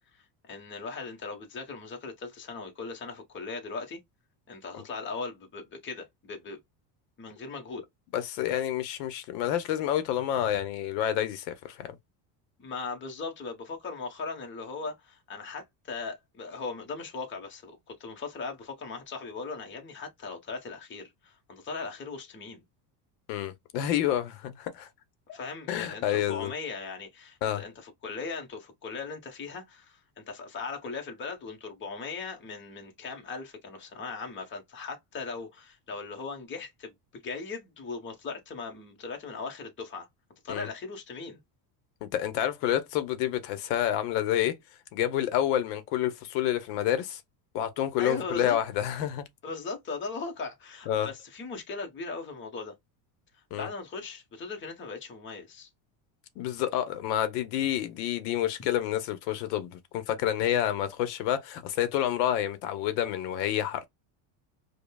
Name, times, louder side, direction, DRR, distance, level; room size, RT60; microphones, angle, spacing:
voice 1, 0.0-4.0 4.5-6.6 7.2-7.8 12.6-22.6 25.3-40.1 40.4-41.4 48.0-48.6 49.4-52.7 53.3-55.7, left 4 dB, 25° left, 1.0 m, -39 dB
voice 2, 8.1-11.9 23.3-24.9 25.7-26.5 27.4-27.6 40.5-40.7 42.0-44.5 44.9-47.2 47.5-49.2 50.9-51.1 53.5-53.7 56.4-63.9, left 11 dB, 75° left, 0.9 m, -29 dB
5.1 x 2.3 x 2.2 m
cardioid pair, 140°, 48 cm